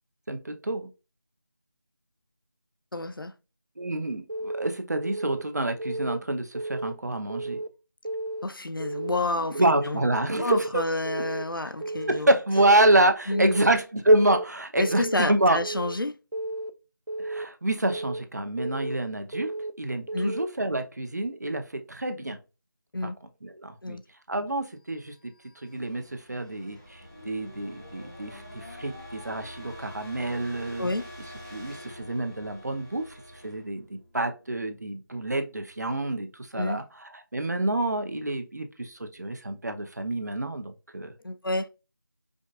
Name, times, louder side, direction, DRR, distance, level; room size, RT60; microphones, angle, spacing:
voice 1, 0.3-0.9 3.8-7.6 9.5-10.8 12.1-15.6 17.2-19.5 19.8-22.4 23.0-23.1 23.4-24.0 24.3-25.3 25.6-30.9 31.5-41.1, right 1 dB, 55° right, 0.8 m, -27 dB
voice 2, 2.9-3.3 8.4-10.1 10.4-12.3 13.3-13.6 14.8-16.2 20.1-20.4 22.9-23.1 23.8-24.0 30.8-31.0 36.5-36.8 41.2-41.7, left 2 dB, 85° left, 0.6 m, -29 dB
Keyboard (musical) / Alarm, 4.3-4.7 5.0-5.4 5.8-6.2 6.5-6.9 7.3-7.7 8.1-8.4 8.8-9.2 9.6-9.9 10.3-10.7 11.1-11.4 11.8-12.2 12.6-12.9 13.3-13.7 14.1-14.4 14.8-15.2 15.6-16.0 16.3-16.7 17.1-17.5 17.8-18.2 18.6-19.0 19.3-19.7 20.1-20.5, right 2 dB, 85° right, 0.6 m, -33 dB
sound 1, 25.0-34.8, equal, 10° right, 0.5 m, -47 dB
sound 2, 27.0-33.5, left 2 dB, 30° left, 0.7 m, -51 dB
5.0 x 2.4 x 2.3 m
figure-of-eight pair, 165°, 11 cm